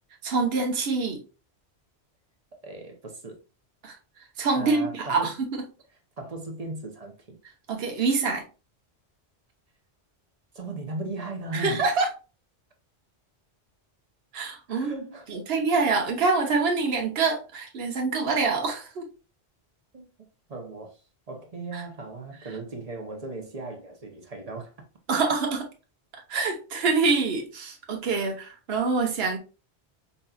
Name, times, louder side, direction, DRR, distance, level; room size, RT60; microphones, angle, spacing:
voice 1, 0.2-1.2 3.8-4.0 4.4-5.5 7.7-8.4 11.5-12.1 14.3-14.9 15.3-19.1 21.7-21.8 25.1-25.6 26.3-29.4, right 4 dB, 70° right, 1.1 m, -25 dB
voice 2, 2.6-3.4 4.5-5.4 6.2-7.4 10.5-11.8 14.7-15.3 19.9-20.1 20.5-21.0 21.3-24.7 25.1-25.2, right 2 dB, 40° right, 0.8 m, -37 dB
5.2 x 2.8 x 2.3 m
omnidirectional pair, 1.1 m